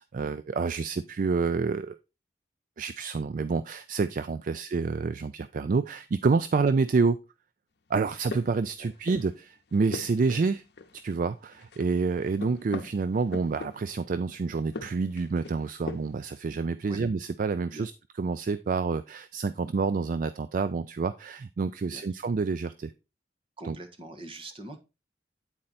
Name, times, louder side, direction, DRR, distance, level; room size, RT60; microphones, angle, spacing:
voice 1, 0.0-2.0 2.8-7.2 7.9-10.6 10.9-17.9 18.2-22.9 23.7-23.8, right 4 dB, 50° right, 13 dB, 0.4 m, -28 dB
sound 1, 8.0-9.4 9.7-11.3 11.5-14.1 14.6-16.3, left 3 dB, 65° left, 0.8 m, -41 dB
voice 2, 23.6-24.8, right 2 dB, 30° right, 6 dB, 1.1 m, -43 dB
8.8 x 4.4 x 4.0 m, 0.28 s
head